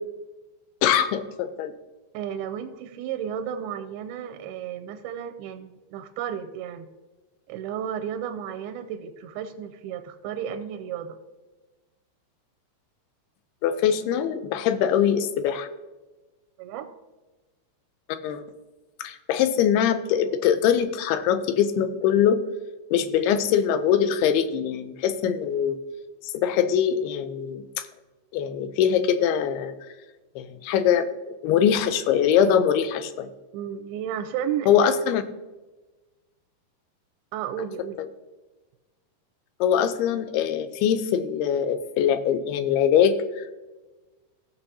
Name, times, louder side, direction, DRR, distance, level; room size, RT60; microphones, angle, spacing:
voice 1, 0.8-1.7 13.6-15.7 18.2-18.4 19.0-22.4 22.9-25.8 26.3-27.8 28.3-29.7 30.4-31.1 31.4-33.3 34.7-35.2 39.6-43.5, left 8 dB, 80° left, 11 dB, 2.6 m, -22 dB
voice 2, 2.1-6.9 7.5-11.2 16.6-16.9 33.5-34.9 37.3-38.0, right 9 dB, 80° right, 7 dB, 2.3 m, -33 dB
17.5 x 7.0 x 2.8 m, 1.2 s
omnidirectional pair, 4.6 m